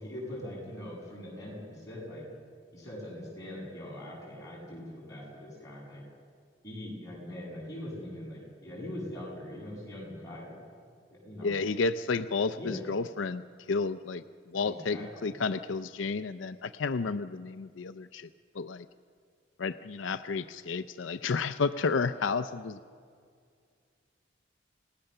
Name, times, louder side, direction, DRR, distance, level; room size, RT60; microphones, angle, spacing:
voice 1, 0.0-2.2 2.7-6.0 6.6-10.6 11.2-11.6 12.6-12.9 14.6-15.4, left 1 dB, 15° left, -5 dB, 7.8 m, -42 dB
voice 2, 11.4-13.4 13.7-14.2 14.5-18.3 18.6-18.8 19.6-22.8, left 4 dB, 85° left, 11 dB, 0.5 m, -31 dB
28.5 x 18.0 x 6.7 m, 2.1 s
head